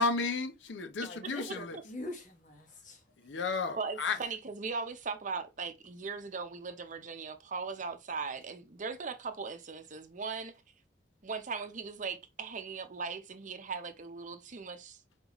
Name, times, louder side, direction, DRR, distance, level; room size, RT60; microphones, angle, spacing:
voice 1, 0.0-1.8 3.2-4.2, left 3 dB, 80° left, 0.7 m, -32 dB
voice 2, 1.0-3.0, left 1 dB, 45° left, 1.4 m, -44 dB
voice 3, 3.8-10.6 11.2-15.0, right 4 dB, 45° right, 0.7 m, -39 dB
4.3 x 4.0 x 3.0 m
head